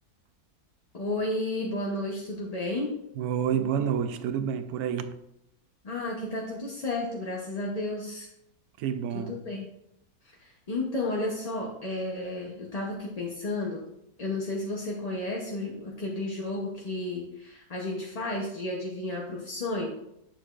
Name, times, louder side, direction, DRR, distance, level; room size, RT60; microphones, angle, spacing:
voice 1, 0.9-2.9 5.8-8.3 9.1-9.7 10.4-13.8 14.2-19.9, left 2 dB, 30° left, 0.7 m, -32 dB
voice 2, 3.2-5.2 8.8-9.4, right 8 dB, 80° right, 1.1 m, -29 dB
10.0 x 6.4 x 2.4 m
omnidirectional pair, 1.6 m